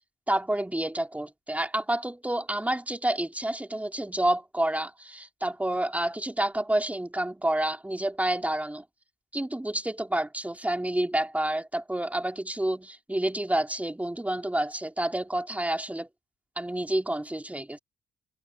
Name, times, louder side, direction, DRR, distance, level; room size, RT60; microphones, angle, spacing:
voice 1, 0.3-8.8 9.3-16.1 16.6-17.8, right 1 dB, 5° right, 3.4 m, -29 dB
cardioid pair, 90°, 20 cm